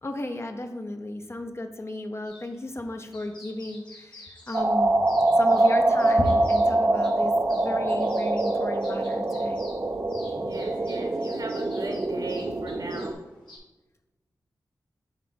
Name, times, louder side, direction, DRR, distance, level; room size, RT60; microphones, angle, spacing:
voice 1, 0.0-5.0 5.4-9.6, left 2 dB, 35° left, 5 dB, 0.7 m, -34 dB
sound 1, 2.2-13.6, left 2 dB, 85° left, 1.7 m, -51 dB
sound 2, 4.5-13.1, right 2 dB, 40° right, 0.6 m, -24 dB
voice 2, 10.3-13.2, right 2 dB, 60° right, 2 dB, 1.2 m, -37 dB
7.3 x 2.5 x 5.2 m, 1.1 s
cardioid pair, 50°, 7 cm